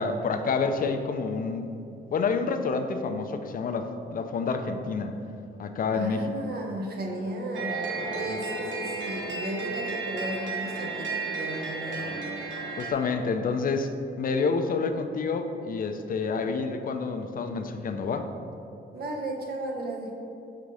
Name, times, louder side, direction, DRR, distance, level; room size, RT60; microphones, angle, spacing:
voice 1, 0.0-1.7 2.1-5.2 5.6-6.2 8.3-8.4 12.8-13.9 14.2-18.3, left 4 dB, 45° left, 7 dB, 0.5 m, -28 dB
voice 2, 5.9-12.4 18.9-20.1, right 1 dB, 50° right, 1 dB, 1.0 m, -35 dB
sound 1, 7.5-12.9, right 3 dB, 70° right, 1.2 m, -33 dB
4.8 x 3.7 x 5.4 m, 2.6 s
cardioid pair, 90°, 20 cm